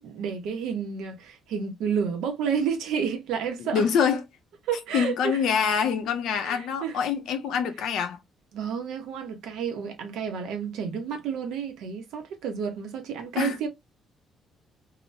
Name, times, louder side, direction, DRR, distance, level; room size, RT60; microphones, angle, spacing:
voice 1, 0.0-3.9 4.7-5.4 6.4-7.0 8.5-13.7, right 7 dB, 70° right, 0.8 m, -30 dB
voice 2, 3.6-4.2 4.9-8.2 13.4-13.6, left 7 dB, 65° left, 0.6 m, -25 dB
2.9 x 2.1 x 2.5 m
cardioid pair, 180°, 0 cm